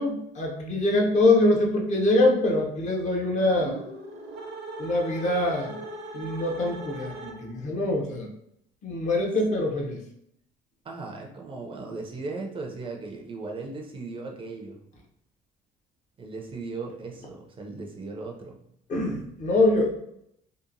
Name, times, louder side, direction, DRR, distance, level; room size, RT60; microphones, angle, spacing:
voice 1, 0.0-3.8 4.8-5.8 6.1-8.3 8.8-10.0 18.9-20.0, left 2 dB, 45° left, 0 dB, 0.7 m, -24 dB
sound 1, 3.5-7.7, right 3 dB, 75° right, 0.7 m, -39 dB
voice 2, 10.8-14.8 16.2-18.6, right 3 dB, 30° right, 1 dB, 0.4 m, -37 dB
2.8 x 2.1 x 2.5 m, 0.75 s
cardioid pair, 110°, 17 cm